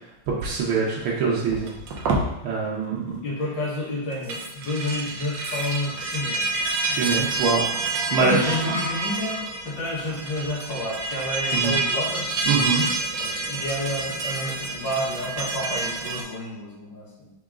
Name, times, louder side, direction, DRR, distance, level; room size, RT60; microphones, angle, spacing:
voice 1, 0.3-1.7 2.4-3.2 6.9-7.7 8.1-8.6 11.5-11.8 12.5-12.9, right 4 dB, 85° right, -5 dB, 1.7 m, -24 dB
sound 1, 1.5-2.3 4.1-16.2, right 3 dB, 70° right, 1.4 m, -28 dB
voice 2, 3.2-6.5 6.9-7.3 8.2-9.4 9.7-12.2 13.2-17.3, left 1 dB, 65° left, -6 dB, 2.1 m, -30 dB
4.9 x 3.0 x 3.6 m, 0.94 s
omnidirectional pair, 2.3 m